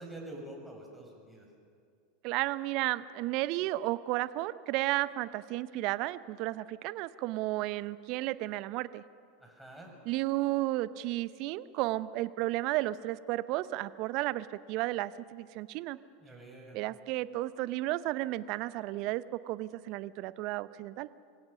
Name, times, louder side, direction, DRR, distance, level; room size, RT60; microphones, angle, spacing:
voice 1, 0.0-1.5 9.4-9.9 16.2-16.8, right 1 dB, ahead, 0 dB, 5.9 m, -46 dB
voice 2, 2.2-9.0 10.0-16.0 16.7-21.1, right 17 dB, 55° right, 17 dB, 0.6 m, -33 dB
24.0 x 17.0 x 6.9 m, 2.3 s
hypercardioid pair, 90°, 0 cm